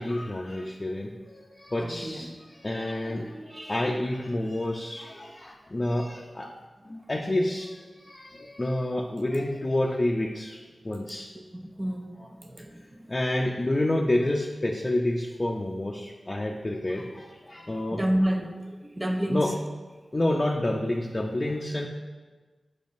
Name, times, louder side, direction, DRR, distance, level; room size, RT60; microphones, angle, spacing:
voice 1, 0.0-3.4 3.7-6.5 6.8-11.3 13.1-18.0 19.3-19.5 20.1-21.9, left 1 dB, 40° left, -1 dB, 0.6 m, -29 dB
voice 2, 1.8-2.3 2.7-3.9 11.3-12.8 17.9-19.5, equal, 25° right, 4 dB, 0.6 m, -31 dB
8.3 x 5.3 x 2.6 m, 1.3 s
cardioid pair, 40°, 0 cm